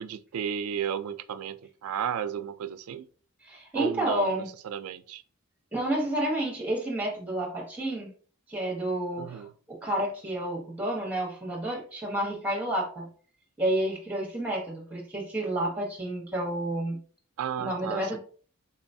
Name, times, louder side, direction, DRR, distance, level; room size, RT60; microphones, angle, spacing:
voice 1, 0.0-3.1 3.7-5.2 9.2-9.5 17.4-18.2, right 8 dB, 85° right, 0.3 m, -33 dB
voice 2, 3.4-4.5 5.7-8.1 8.5-13.1 13.6-17.0 17.6-18.2, right 1 dB, 10° right, 1.2 m, -30 dB
4.0 x 3.0 x 2.6 m
head